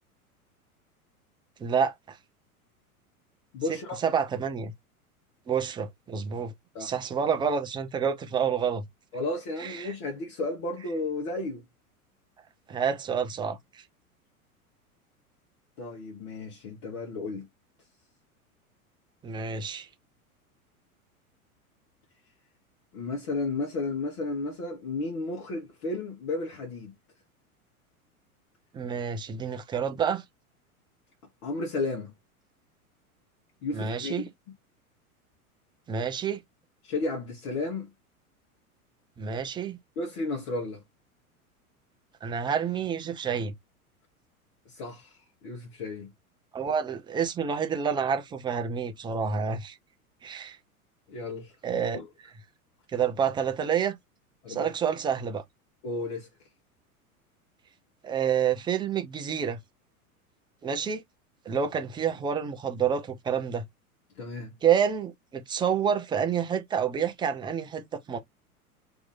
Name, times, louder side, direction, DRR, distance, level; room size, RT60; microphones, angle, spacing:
voice 1, 1.6-2.2 3.7-4.7 5.5-6.5 6.8-8.8 9.6-9.9 12.7-13.8 19.2-19.9 28.7-30.2 33.7-34.3 35.9-36.4 39.2-39.8 42.2-43.5 46.5-49.8 50.2-50.6 51.6-52.0 52.9-54.0 54.5-55.4 58.0-59.6 60.6-61.0 61.5-63.6 64.6-68.2, right 7 dB, 10° right, 0.5 m, -28 dB
voice 2, 3.5-4.0 6.7-6.9 9.1-11.6 15.8-17.5 22.9-26.9 31.4-32.1 33.6-34.1 36.8-37.9 40.0-40.8 44.7-45.1 45.4-46.1 51.1-51.5 51.9-52.1 54.4-54.7 55.8-56.3 64.2-64.5, left 2 dB, 40° left, 1.2 m, -33 dB
2.9 x 2.7 x 3.9 m
figure-of-eight pair, 90°, 44 cm